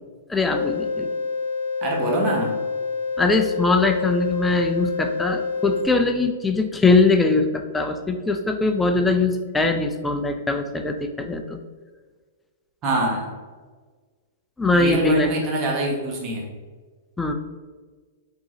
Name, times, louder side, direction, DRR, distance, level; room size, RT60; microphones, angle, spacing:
voice 1, 0.3-1.1 3.2-11.6 14.6-15.3 17.2-17.3, left 3 dB, 10° left, 6 dB, 0.4 m, -21 dB
sound 1, 0.5-5.8, left 5 dB, 85° left, 0.5 m, -27 dB
voice 2, 1.8-2.5 12.8-13.3 14.7-16.5, right 1 dB, 35° right, -1 dB, 1.3 m, -24 dB
4.7 x 3.8 x 2.7 m, 1.4 s
hypercardioid pair, 120°, 0 cm